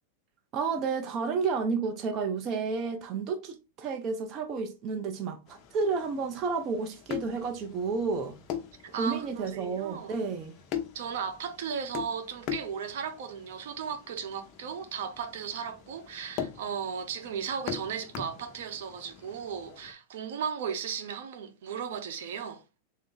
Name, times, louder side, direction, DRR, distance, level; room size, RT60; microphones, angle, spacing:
voice 1, 0.5-8.4 9.0-10.5, right 5 dB, 35° right, 0.6 m, -31 dB
sound 1, 5.5-19.9, left 9 dB, 35° left, 0.7 m, -42 dB
voice 2, 8.8-10.2 10.9-22.6, right 7 dB, 70° right, 0.8 m, -36 dB
3.7 x 2.6 x 3.7 m
supercardioid pair, 145°, 0 cm